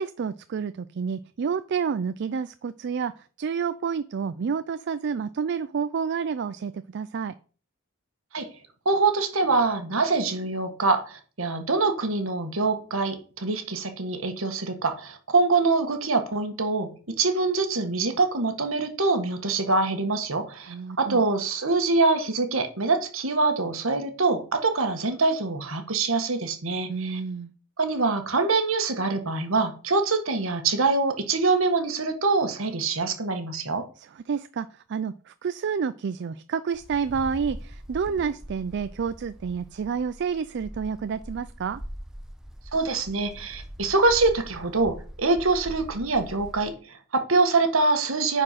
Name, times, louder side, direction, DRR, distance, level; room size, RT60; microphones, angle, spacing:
voice 1, 0.0-7.3 20.7-21.2 26.9-27.5 34.0-41.8, right 6 dB, 55° right, 12 dB, 0.4 m, -29 dB
voice 2, 8.8-27.2 27.8-33.8 42.7-48.4, right 3 dB, 75° right, 7 dB, 1.5 m, -24 dB
Wind, 36.7-46.8, equal, 5° right, 0.8 m, -42 dB
9.6 x 4.5 x 5.7 m, 0.40 s
head